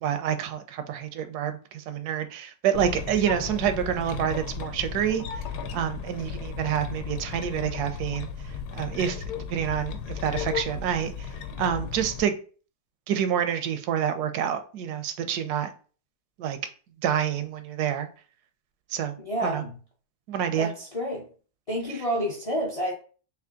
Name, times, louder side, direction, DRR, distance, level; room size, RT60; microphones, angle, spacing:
voice 1, 0.0-5.2 5.7-8.3 8.7-9.2 9.5-11.3 11.6-12.3 13.1-15.7 16.4-16.6 17.0-18.1 18.9-19.1 19.4-19.6 20.3-20.7, right 9 dB, 80° right, 1.1 m, -27 dB
sound 1, 2.7-12.2, left 6 dB, 90° left, 1.1 m, -35 dB
voice 2, 19.2-19.8 20.5-21.3 21.7-22.9, equal, 45° left, 0.4 m, -29 dB
3.4 x 2.9 x 3.7 m
omnidirectional pair, 1.7 m